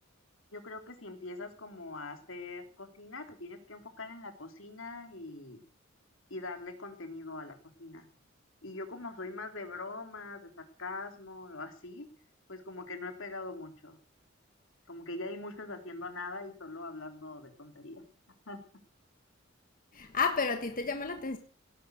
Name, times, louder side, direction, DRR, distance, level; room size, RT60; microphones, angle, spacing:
voice 1, 0.5-5.6 6.3-8.1 8.6-12.1 12.5-14.0 14.9-18.0 18.5-18.6, left 2 dB, 75° left, 3.3 m, -42 dB
voice 2, 19.9-21.4, left 4 dB, 45° left, 1.5 m, -31 dB
17.5 x 11.5 x 6.4 m
head